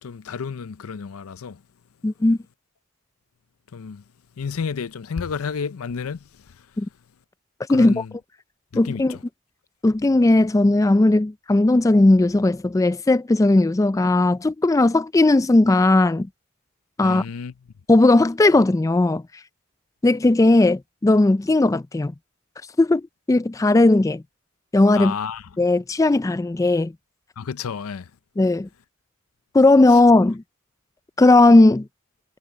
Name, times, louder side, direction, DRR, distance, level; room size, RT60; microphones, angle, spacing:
voice 1, 0.0-1.6 3.7-4.0 4.4-6.2 7.7-8.1 8.7-9.2 17.0-17.5 24.9-25.4 27.4-28.1 29.9-30.0, left 6 dB, 90° left, 0.5 m, -31 dB
voice 2, 2.0-2.4 6.8-6.9 7.7-8.0 8.7-9.2 9.8-16.3 17.0-17.2 17.9-19.2 20.0-22.1 22.8-23.0 23.3-24.2 24.7-25.1 25.6-26.9 28.4-28.7 29.5-30.4 31.2-31.9, left 2 dB, 15° left, 0.3 m, -17 dB
head